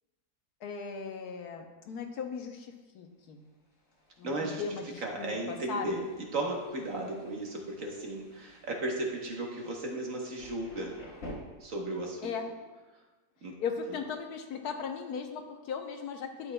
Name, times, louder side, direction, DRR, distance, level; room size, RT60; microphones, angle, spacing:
voice 1, 0.6-3.4 4.2-6.0 12.2-12.5 13.6-16.5, left 6 dB, 75° left, 5 dB, 1.2 m, -38 dB
Thunder, 3.2-11.3, left 1 dB, 55° left, 1.7 m, -53 dB
voice 2, 4.2-4.6 5.0-6.0 6.3-10.9 11.6-12.3 13.4-13.6 13.9-14.0, right 2 dB, 55° right, 0 dB, 1.4 m, -35 dB
11.5 x 6.3 x 2.2 m, 1.2 s
omnidirectional pair, 1.7 m